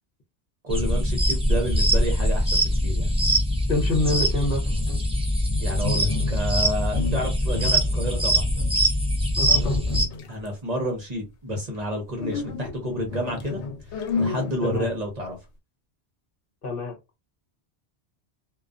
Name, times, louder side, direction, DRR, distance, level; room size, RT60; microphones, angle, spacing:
voice 1, 0.6-3.1 5.6-8.4 10.3-13.6 14.2-15.4, equal, 45° right, 2 dB, 0.7 m, -30 dB
sound 1, 0.7-10.0, equal, 10° right, 0.4 m, -23 dB
voice 2, 3.7-4.6 9.4-9.8 14.6-14.9 16.6-17.0, left 1 dB, 60° left, 1 dB, 0.9 m, -26 dB
sound 2, 4.5-6.6 6.9-8.8 9.4-10.5 12.2-15.2, left 4 dB, 90° left, 0.9 m, -32 dB
2.4 x 2.2 x 2.4 m, 0.24 s
omnidirectional pair, 1.1 m